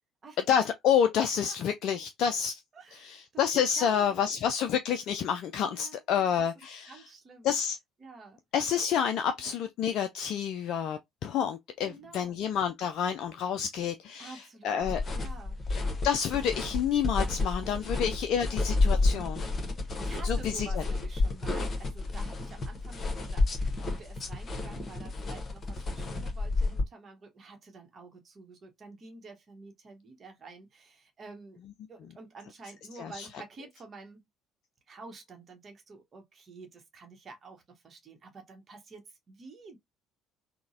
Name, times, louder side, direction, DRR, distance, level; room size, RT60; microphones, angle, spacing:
voice 1, 0.5-2.6 2.9-7.0 7.4-7.8 8.5-15.0 16.0-19.5 20.2-20.8 33.0-33.3, left 8 dB, 50° left, 0.3 m, -29 dB
voice 2, 2.7-3.4 3.8-4.4 5.6-6.3 6.9-7.6 8.0-8.4 9.4-9.6 11.8-12.4 14.2-14.9 15.1-15.6 17.4-17.5 17.8-18.1 18.5-19.4 19.8-31.6 31.9-34.2 34.9-39.8, right 3 dB, 35° right, 1.0 m, -49 dB
sound 1, 14.8-26.8, left 3 dB, 30° left, 1.0 m, -30 dB
3.8 x 2.1 x 2.5 m
figure-of-eight pair, 55°, 0 cm